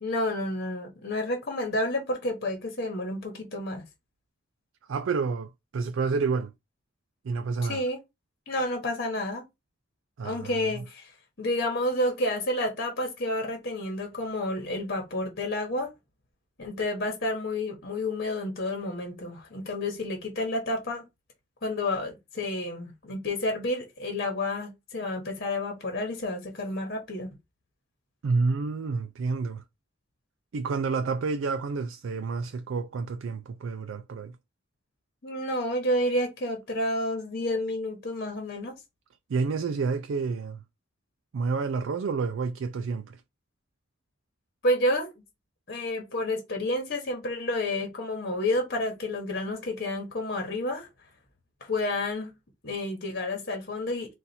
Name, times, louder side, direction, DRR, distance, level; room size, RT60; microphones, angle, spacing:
voice 1, 0.0-3.8 7.6-8.0 8.5-9.4 10.2-11.1 11.4-15.9 16.6-21.0 21.6-27.3 35.2-38.7 44.6-45.1 45.7-50.9 51.6-52.3 52.6-54.1, left 1 dB, 50° left, 1.2 m, -30 dB
voice 2, 4.9-6.5 7.2-7.8 10.2-10.8 28.2-29.6 30.5-34.4 39.3-40.6 41.3-43.2, right 4 dB, 70° right, 0.4 m, -29 dB
4.1 x 2.5 x 4.2 m
head